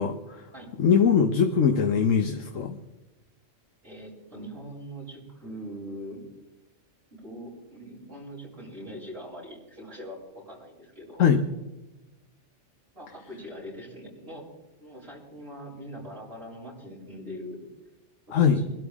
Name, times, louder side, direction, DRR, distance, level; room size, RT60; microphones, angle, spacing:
voice 1, 0.0-0.4 0.8-2.8 11.2-11.4 18.3-18.6, left 7 dB, 90° left, 6 dB, 1.4 m, -22 dB
voice 2, 3.8-6.3 7.1-11.2 12.9-14.5 14.8-17.6 18.3-18.7, equal, 50° right, -5 dB, 7.2 m, -42 dB
24.5 x 12.0 x 3.6 m, 1.0 s
omnidirectional pair, 1.3 m